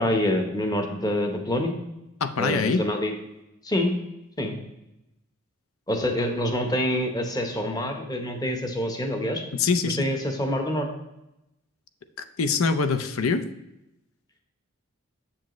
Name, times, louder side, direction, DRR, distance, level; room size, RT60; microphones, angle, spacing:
voice 1, 0.0-1.7 2.4-3.1 3.6-3.9 4.4-4.6 5.9-9.4 9.8-10.9, left 1 dB, 20° left, 4 dB, 1.0 m, -26 dB
voice 2, 2.2-2.8 9.5-10.0 12.2-13.5, left 4 dB, 75° left, 11 dB, 0.6 m, -24 dB
7.4 x 7.4 x 3.1 m, 0.90 s
head